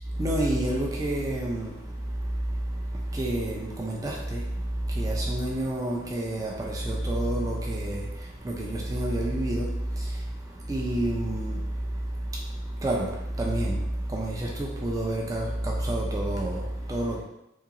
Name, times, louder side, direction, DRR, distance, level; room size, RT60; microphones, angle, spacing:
voice 1, 0.1-17.2, right 1 dB, 20° right, 0.3 m, -29 dB
2.8 x 2.7 x 2.5 m
head